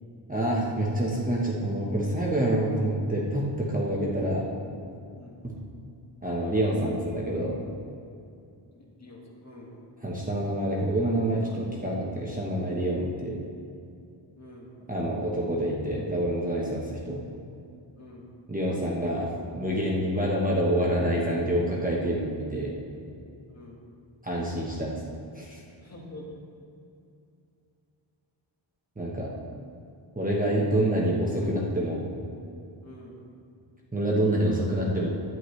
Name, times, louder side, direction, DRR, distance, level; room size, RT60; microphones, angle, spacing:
voice 1, 0.3-4.5 6.2-7.6 10.0-13.5 14.9-17.2 18.5-22.7 24.2-24.9 25.3-25.6 29.0-29.3 30.1-32.0 33.9-35.1, right 1 dB, 15° right, -4 dB, 1.1 m, -27 dB
voice 2, 8.8-9.8 14.4-14.7 18.0-18.3 20.1-20.2 23.5-23.8 25.8-26.3 32.8-33.2, left 1 dB, 35° left, -3 dB, 1.6 m, -47 dB
11.0 x 10.0 x 3.2 m, 2.5 s
wide cardioid pair, 160°, 48 cm